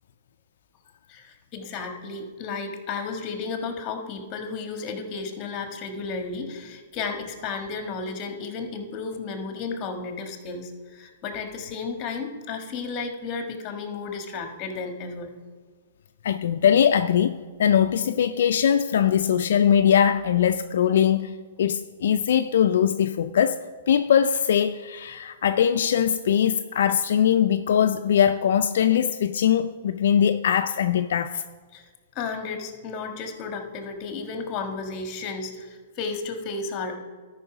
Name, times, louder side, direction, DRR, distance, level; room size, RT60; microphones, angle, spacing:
voice 1, 1.1-15.3 31.7-31.9 32.1-37.0, left 4 dB, 30° left, 1.4 m, -33 dB
voice 2, 16.2-23.6 23.9-31.4, left 9 dB, 70° left, 0.3 m, -21 dB
12.5 x 5.5 x 4.9 m
hypercardioid pair, 140°, 0 cm